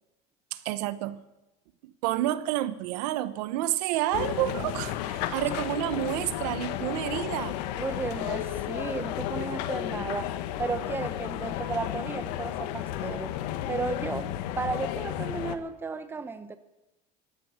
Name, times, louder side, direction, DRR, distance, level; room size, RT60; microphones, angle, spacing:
voice 1, 0.5-1.2 1.8-7.6, right 14 dB, 85° right, 14 dB, 1.0 m, -29 dB
sound 1, 4.1-15.6, left 12 dB, 85° left, 1.2 m, -33 dB
voice 2, 7.7-13.3 13.7-14.3 14.6-16.6, right 4 dB, 10° right, 11 dB, 0.8 m, -34 dB
13.5 x 12.5 x 8.0 m, 0.97 s
cardioid pair, 150°, 20 cm